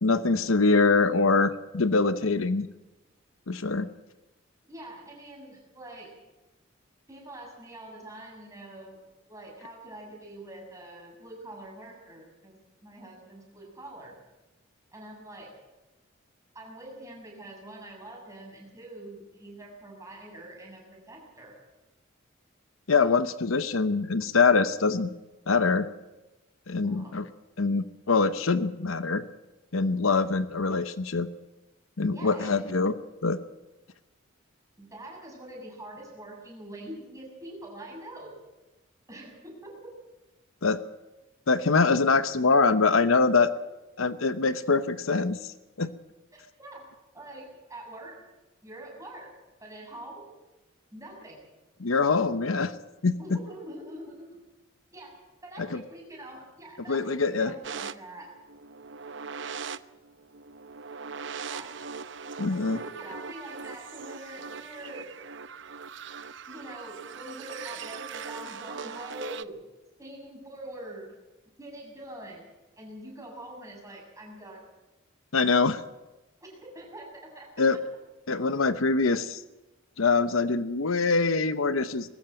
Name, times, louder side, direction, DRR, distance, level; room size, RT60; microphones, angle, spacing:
voice 1, 0.0-2.7 3.5-3.9 22.9-25.1 25.5-25.9 26.7-27.3 27.6-29.2 29.7-31.3 32.0-32.9 33.2-33.4 40.6-40.8 41.5-43.5 44.0-45.5 45.8-45.9 51.8-52.7 53.0-53.4 55.6-55.8 56.9-57.5 62.4-62.8 75.3-75.8 77.6-77.8 78.3-79.4 80.0-82.1, left 4 dB, 85° left, 12 dB, 0.9 m, -24 dB
voice 2, 4.7-6.1 7.1-9.0 9.3-14.2 14.9-15.5 16.5-21.5 26.8-27.1 32.1-32.7 34.8-38.4 39.1-39.7 46.3-46.8 47.1-48.2 48.6-49.3 49.6-50.3 50.9-51.4 53.2-54.3 54.9-55.1 55.4-58.3 61.5-61.7 62.5-65.1 66.5-69.6 70.0-71.1 71.6-72.4 72.8-74.7 76.4-77.5, right 1 dB, 15° right, -1 dB, 7.1 m, -44 dB
sound 1, 57.6-69.4, right 6 dB, 60° right, 0.7 m, -40 dB
22.5 x 13.5 x 8.8 m, 1.1 s
head